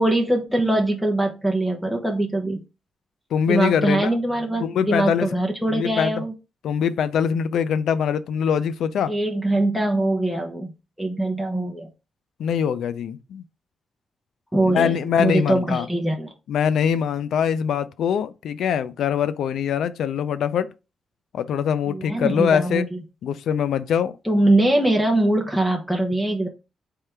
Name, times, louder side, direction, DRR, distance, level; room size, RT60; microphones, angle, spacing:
voice 1, 0.0-2.6 3.5-6.3 9.1-10.7 11.0-11.9 14.5-16.3 21.9-23.0 24.2-26.5, right 1 dB, 5° left, 0.7 m, -22 dB
voice 2, 3.3-4.1 4.6-5.3 5.7-6.1 6.6-9.1 12.4-13.4 14.6-15.9 16.5-20.7 21.3-22.9 23.2-24.2, left 8 dB, 85° left, 0.4 m, -23 dB
3.6 x 3.3 x 4.3 m
cardioid pair, 125°, 0 cm